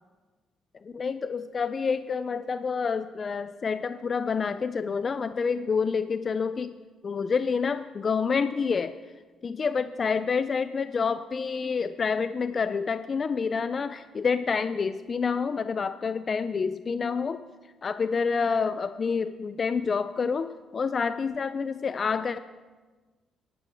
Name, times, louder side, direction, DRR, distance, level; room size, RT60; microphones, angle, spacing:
voice 1, 0.8-6.8 7.0-9.0 9.4-17.4 17.8-22.4, left 5 dB, 45° left, 12 dB, 0.4 m, -28 dB
11.5 x 11.5 x 3.5 m, 1.3 s
supercardioid pair, 75°, 0 cm